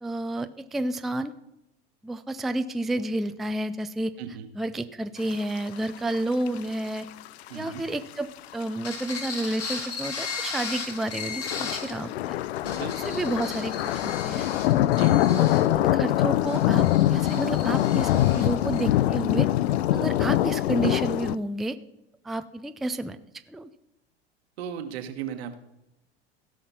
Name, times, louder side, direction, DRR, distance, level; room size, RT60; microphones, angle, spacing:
voice 1, 0.0-1.3 2.0-4.1 4.5-7.1 7.5-12.4 12.9-14.5 15.3-19.5 19.9-21.8 22.2-23.2 23.5-23.7, right 1 dB, ahead, 9 dB, 0.4 m, -30 dB
voice 2, 4.2-4.5 7.5-7.8 12.6-13.1 14.9-15.2 24.6-25.6, right 8 dB, 70° right, 7 dB, 1.5 m, -36 dB
sound 1, 6.1-6.2 6.5-6.6 7.2-7.8 8.5-8.6 8.8-8.9 9.3-10.3 10.8-21.4, left 14 dB, 80° left, 0.5 m, -24 dB
sound 2, 8.8-12.0 12.5-18.8, left 5 dB, 45° left, 3.0 m, -37 dB
16.0 x 5.8 x 5.7 m, 0.90 s
hypercardioid pair, 95°, 32 cm